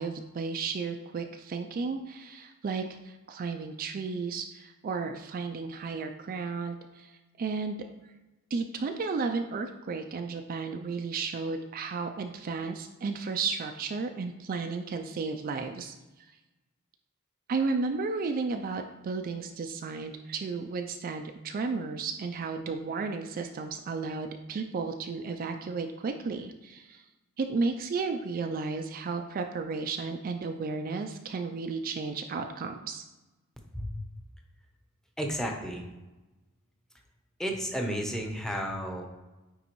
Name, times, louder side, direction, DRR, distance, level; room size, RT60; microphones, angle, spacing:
voice 1, 0.0-7.9 8.5-16.4 17.5-27.0 27.4-33.0, right 4 dB, 40° right, 5 dB, 0.3 m, -33 dB
voice 2, 33.7-34.0 35.2-35.8 37.4-39.1, equal, 5° left, 1 dB, 0.7 m, -32 dB
9.2 x 3.6 x 3.0 m, 1.1 s
head